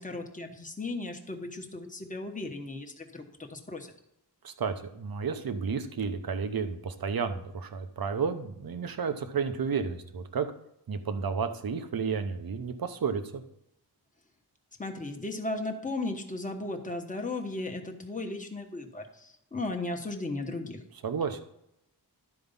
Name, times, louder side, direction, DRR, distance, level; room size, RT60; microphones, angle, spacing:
voice 1, 0.0-3.9 14.8-20.8, left 2 dB, 20° left, 3 dB, 1.1 m, -36 dB
voice 2, 4.4-10.5 10.9-13.4 21.0-21.4, right 6 dB, 55° right, 8 dB, 0.9 m, -32 dB
12.0 x 4.7 x 5.4 m, 0.79 s
wide cardioid pair, 130°, 41 cm